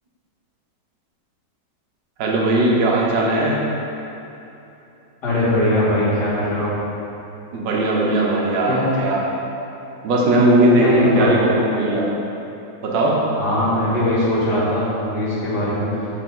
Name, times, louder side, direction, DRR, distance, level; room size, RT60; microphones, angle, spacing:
voice 1, 2.2-3.6 7.5-9.2 10.0-12.1 12.8-13.2, right 1 dB, 90° right, -3 dB, 1.6 m, -18 dB
voice 2, 5.2-6.8 8.7-8.9 10.7-11.5 13.3-15.9, left 1 dB, 70° left, -9 dB, 2.3 m, -20 dB
7.6 x 4.3 x 3.7 m, 3.0 s
omnidirectional pair, 1.9 m